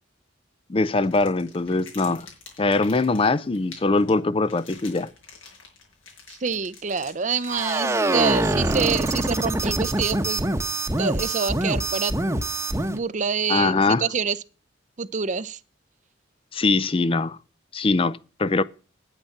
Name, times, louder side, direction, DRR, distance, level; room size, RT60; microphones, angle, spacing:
voice 1, 0.7-2.3 2.6-5.1 13.5-14.1 16.5-17.4 17.7-18.6, left 3 dB, 25° left, 0.4 m, -22 dB
sound 1, 1.0-9.5, left 5 dB, 90° left, 5.9 m, -47 dB
voice 2, 6.3-10.5 11.0-12.1 12.9-14.4 15.0-15.6, right 5 dB, 40° right, 0.6 m, -26 dB
sound 2, 7.5-13.0, right 1 dB, 15° right, 1.0 m, -24 dB
10.0 x 9.1 x 5.7 m
head